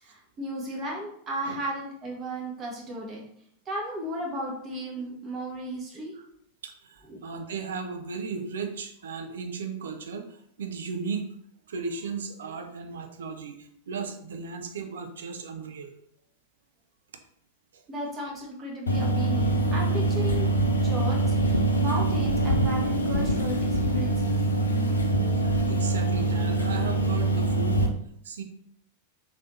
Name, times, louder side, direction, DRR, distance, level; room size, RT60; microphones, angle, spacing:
voice 1, 0.0-3.2 3.7-6.1 7.1-7.2 17.9-20.5 20.8-24.4, right 1 dB, 25° right, -2 dB, 0.9 m, -35 dB
voice 2, 6.6-11.3 11.7-15.9 17.7-17.8 25.4-27.8 28.2-28.4, right 5 dB, 65° right, 5 dB, 0.4 m, -36 dB
sound 1, 18.9-27.9, right 2 dB, 75° left, 0.4 m, -24 dB
3.2 x 2.6 x 3.1 m, 0.69 s
figure-of-eight pair, 90°, 0 cm